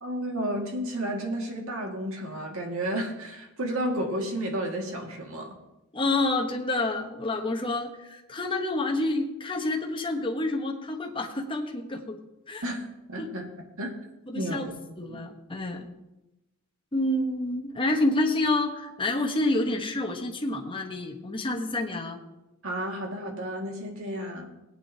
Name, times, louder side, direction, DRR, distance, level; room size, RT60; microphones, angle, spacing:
voice 1, 0.0-5.5 12.6-13.5 13.8-13.9 14.3-15.2 22.6-24.5, right 1 dB, 65° right, 1 dB, 2.0 m, -32 dB
voice 2, 5.9-12.2 12.5-12.6 13.2-13.3 14.3-14.7 15.0-15.9 16.9-22.2, left 2 dB, 25° left, 1 dB, 1.1 m, -28 dB
18.5 x 9.0 x 2.8 m, 0.94 s
head